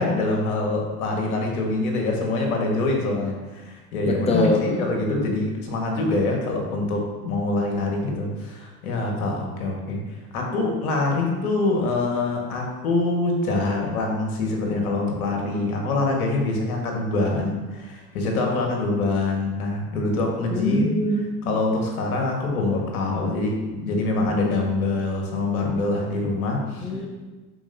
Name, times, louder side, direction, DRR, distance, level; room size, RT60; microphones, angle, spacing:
voice 1, 0.0-10.0 10.3-20.9 21.5-26.9, left 2 dB, 70° left, 0 dB, 1.7 m, -25 dB
voice 2, 4.0-4.6 4.9-5.1 20.5-21.5 26.8-27.1, left 1 dB, 15° left, 2 dB, 1.0 m, -23 dB
11.5 x 4.4 x 2.7 m, 1.2 s
hypercardioid pair, 80°, 44 cm